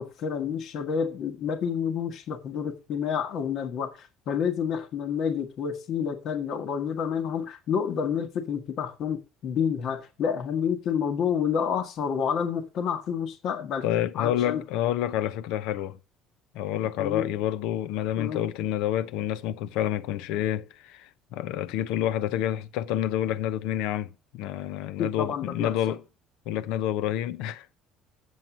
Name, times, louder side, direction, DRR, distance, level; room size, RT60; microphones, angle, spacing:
voice 1, 0.0-13.8 14.1-14.6 17.0-17.3 18.2-18.4 25.0-26.0, left 7 dB, 55° left, 1.5 m, -29 dB
voice 2, 13.8-16.0 16.5-26.0 26.5-27.7, left 11 dB, 80° left, 0.8 m, -28 dB
7.8 x 7.5 x 6.0 m
cardioid pair, 140°, 0 cm